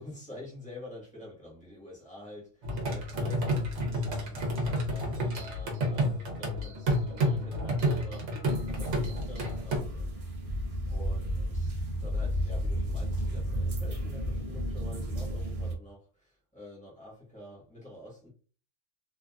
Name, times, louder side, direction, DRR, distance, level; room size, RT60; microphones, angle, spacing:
voice 1, 0.0-4.5 4.9-10.6 10.9-18.3, left 1 dB, 5° left, 1.2 m, -48 dB
sound 1, 2.6-9.8, equal, 70° right, 1.1 m, -30 dB
sound 2, 8.4-15.7, equal, 45° right, 0.5 m, -32 dB
2.9 x 2.4 x 2.3 m
omnidirectional pair, 1.3 m